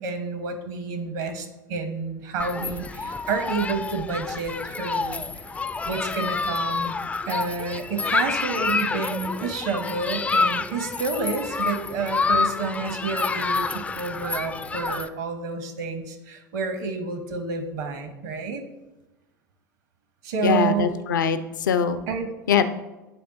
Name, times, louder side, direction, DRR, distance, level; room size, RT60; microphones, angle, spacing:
voice 1, 0.0-5.5 5.8-7.0 7.3-18.6 20.2-20.9 22.1-22.3, right 4 dB, 60° right, 7 dB, 1.0 m, -29 dB
Human group actions, 2.4-15.1, left 4 dB, 15° left, 0.3 m, -28 dB
voice 2, 20.4-22.0 22.5-22.7, left 7 dB, 70° left, 11 dB, 0.5 m, -22 dB
9.1 x 3.4 x 3.9 m, 1.1 s
figure-of-eight pair, 75°, 10 cm